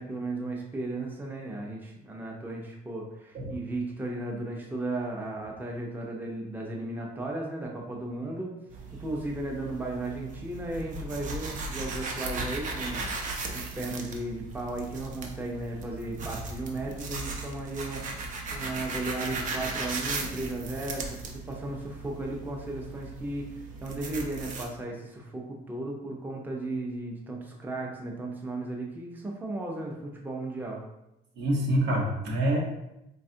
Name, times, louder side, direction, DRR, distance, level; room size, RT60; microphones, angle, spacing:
voice 1, 0.0-8.5 8.9-30.8, right 2 dB, 10° right, -1 dB, 0.6 m, -35 dB
sound 1, 8.7-24.7, right 3 dB, 50° right, 0.6 m, -37 dB
voice 2, 31.4-32.6, right 1 dB, 80° right, -2 dB, 1.0 m, -26 dB
4.1 x 2.3 x 2.6 m, 0.88 s
cardioid pair, 110°, 17 cm